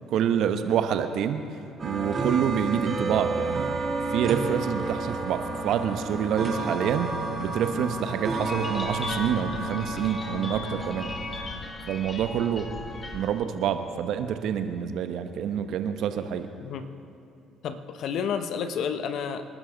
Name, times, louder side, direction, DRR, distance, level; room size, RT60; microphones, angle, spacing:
voice 1, 0.1-1.4 1.8-3.7 4.1-7.1 7.4-11.1 11.9-12.7 13.1-16.5, right 8 dB, 65° right, 8 dB, 1.1 m, -27 dB
sound 1, 1.8-11.5, right 2 dB, 40° right, 3.3 m, -31 dB
sound 2, 8.4-13.4, left 3 dB, 30° left, 2.1 m, -38 dB
voice 2, 17.6-19.5, left 7 dB, 65° left, 9 dB, 1.1 m, -30 dB
27.0 x 12.5 x 4.1 m, 2.6 s
hypercardioid pair, 55°, 0 cm